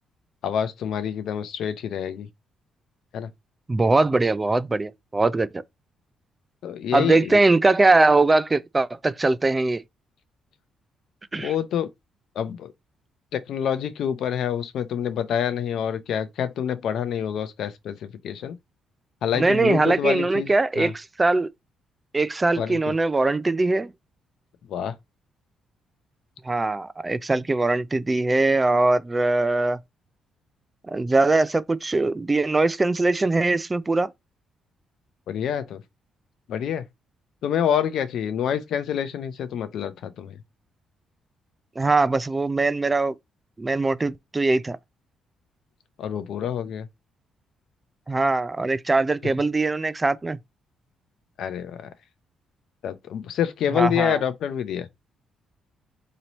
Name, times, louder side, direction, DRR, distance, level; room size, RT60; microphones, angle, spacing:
voice 1, 0.4-2.3 3.1-3.3 6.6-7.4 11.3-11.9 12.4-12.7 13.3-18.6 19.2-20.9 22.6-22.8 24.7-24.9 35.3-35.8 36.5-36.8 37.4-40.4 46.0-46.9 51.4-51.9 52.8-54.9, left 9 dB, 75° left, 0.6 m, -27 dB
voice 2, 3.7-5.5 6.9-9.8 11.3-11.5 19.3-21.5 22.1-23.9 26.5-29.8 30.9-34.1 41.8-43.1 43.6-44.8 48.1-50.4 53.7-54.2, right 3 dB, 20° right, 0.3 m, -21 dB
3.1 x 2.8 x 4.0 m
cardioid pair, 90°, 0 cm